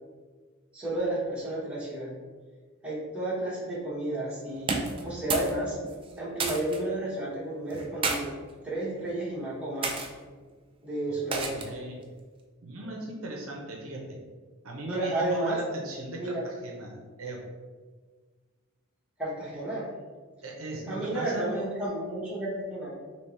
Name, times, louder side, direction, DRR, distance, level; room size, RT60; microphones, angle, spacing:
voice 1, 0.7-2.1 2.8-4.8 5.0-5.8 6.2-8.3 8.6-10.0 10.8-11.8 14.9-15.6 16.2-16.4 19.2-19.9 20.9-22.9, right 1 dB, 5° right, -9 dB, 1.2 m, -32 dB
sound 1, 4.6-5.6 5.8-6.8 7.7-8.2 9.0-9.2 9.8-10.1 11.3-11.8, right 4 dB, 25° right, 0.4 m, -31 dB
voice 2, 11.1-12.0 12.6-14.2 14.6-17.4 20.4-21.6, right 2 dB, 65° right, 0 dB, 0.7 m, -38 dB
3.4 x 2.9 x 4.2 m, 1.5 s
head